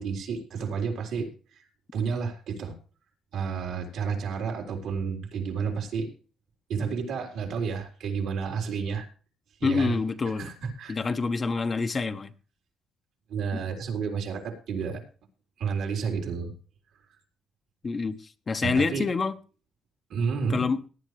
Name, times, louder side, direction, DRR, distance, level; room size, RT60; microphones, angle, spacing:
voice 1, 0.0-1.6 1.9-2.7 3.3-6.1 6.7-9.1 9.6-10.0 10.4-11.0 13.3-15.0 15.6-16.5 18.6-19.1 20.1-20.6, right 6 dB, 80° right, 2 dB, 3.9 m, -31 dB
voice 2, 9.6-10.5 10.9-12.3 13.5-13.6 17.8-18.2 18.5-19.3 20.5-20.8, left 4 dB, 35° left, 9 dB, 1.1 m, -26 dB
18.0 x 10.0 x 3.3 m, 0.36 s
cardioid pair, 90°, 0 cm